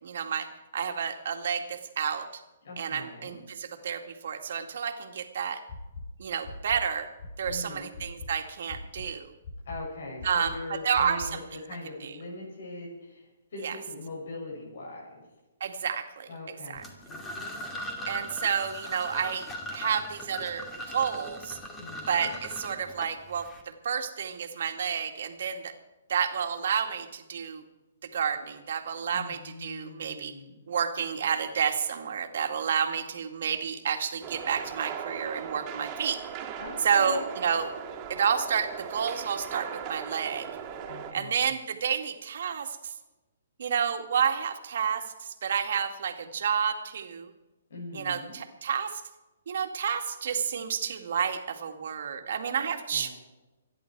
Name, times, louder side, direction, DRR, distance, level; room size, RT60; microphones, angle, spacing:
voice 1, 0.0-2.3 2.8-5.6 6.2-7.1 7.4-9.3 10.2-11.6 12.0-12.2 13.6-13.8 15.6-16.3 16.7-16.8 18.1-21.6 22.1-25.7 26.1-27.6 28.0-30.3 30.7-36.2 36.8-37.7 38.1-40.5 41.1-42.9 43.6-47.3 47.9-49.0 49.5-53.1, right 7 dB, 65° right, 5 dB, 2.0 m, -30 dB
voice 2, 2.6-3.4 7.5-7.9 9.7-15.2 16.3-16.8 17.1-17.7 21.8-22.3 29.1-30.7 36.6-37.3 40.9-41.5 47.7-48.4 52.6-53.1, left 2 dB, 70° left, -4 dB, 7.1 m, -41 dB
sound 1, 5.7-6.0 6.4-6.8 7.2-7.5 7.9-8.3 8.7-9.0 9.4-9.8 10.2-10.5 10.9-11.3, left 3 dB, 45° left, 4.4 m, -41 dB
sound 2, 16.8-23.6, equal, 10° left, 2.5 m, -39 dB
sound 3, 34.2-41.1, right 8 dB, 25° right, 2.8 m, -39 dB
25.5 x 11.0 x 4.7 m, 1.1 s
hypercardioid pair, 145°, 0 cm